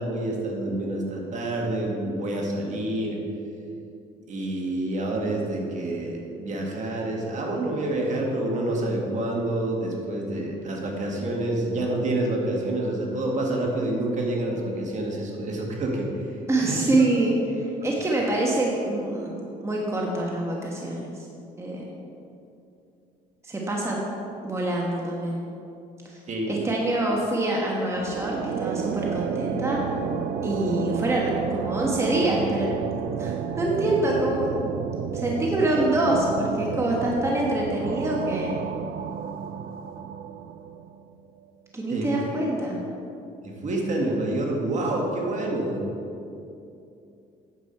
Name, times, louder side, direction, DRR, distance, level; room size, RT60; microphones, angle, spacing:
voice 1, 0.0-3.2 4.3-16.1 16.6-16.8 26.3-26.6 41.9-42.1 43.4-45.8, right 1 dB, 45° right, -1 dB, 1.7 m, -28 dB
voice 2, 16.5-19.3 19.6-21.3 21.6-21.8 23.4-24.0 24.4-25.4 26.0-26.2 26.5-29.8 30.4-34.7 35.1-38.6 41.7-42.8, right 1 dB, 15° right, -3 dB, 1.3 m, -25 dB
sound 1, 28.0-41.1, right 7 dB, 65° right, 0.5 m, -31 dB
9.4 x 7.1 x 4.5 m, 2.7 s
cardioid pair, 110°, 17 cm